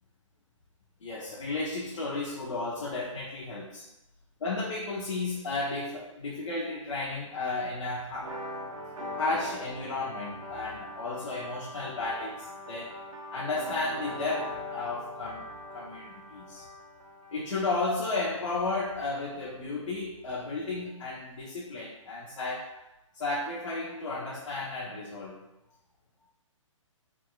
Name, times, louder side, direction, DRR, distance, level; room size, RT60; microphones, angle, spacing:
voice 1, 1.0-3.9 4.4-8.4 9.2-13.0 13.3-15.5 15.7-16.7 17.3-22.8 23.1-25.4, left 3 dB, 65° left, -4 dB, 0.9 m, -33 dB
sound 1, 8.2-17.8, left 1 dB, 75° right, 0.8 m, -41 dB
4.4 x 3.7 x 2.4 m, 0.92 s
figure-of-eight pair, 130°, 17 cm